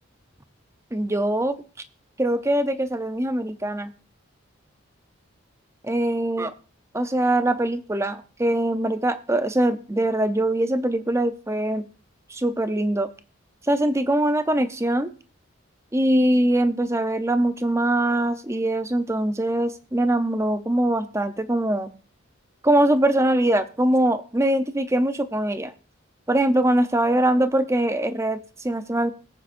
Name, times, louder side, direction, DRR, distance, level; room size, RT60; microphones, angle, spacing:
voice 1, 0.9-1.6 2.2-3.9 5.8-6.5 6.9-11.9 12.3-13.1 13.6-15.1 15.9-21.9 22.6-25.7 26.3-29.1, right 1 dB, 15° right, 11 dB, 0.7 m, -22 dB
20.5 x 8.5 x 2.6 m, 0.37 s
head